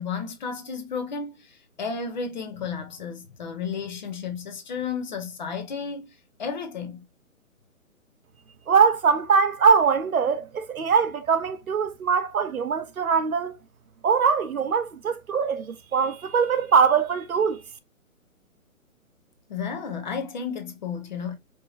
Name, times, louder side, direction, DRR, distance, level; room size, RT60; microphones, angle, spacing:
voice 1, 0.0-6.1 6.4-7.0 19.5-21.3, left 5 dB, 30° left, 0.7 m, -32 dB
voice 2, 8.7-13.6 14.0-17.6, right 6 dB, 75° right, 0.8 m, -22 dB
4.5 x 2.9 x 2.3 m
figure-of-eight pair, 140°, 43 cm